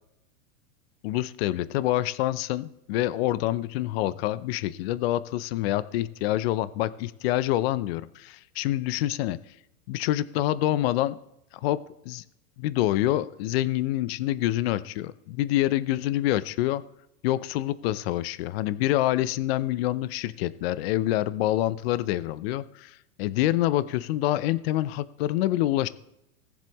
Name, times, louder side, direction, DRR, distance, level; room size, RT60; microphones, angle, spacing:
voice 1, 1.0-9.4 9.9-11.2 11.6-11.8 12.1-12.2 12.6-16.8 17.2-25.9, left 14 dB, 45° left, 16 dB, 0.5 m, -26 dB
18.5 x 7.3 x 3.0 m, 0.82 s
hypercardioid pair, 135°, 42 cm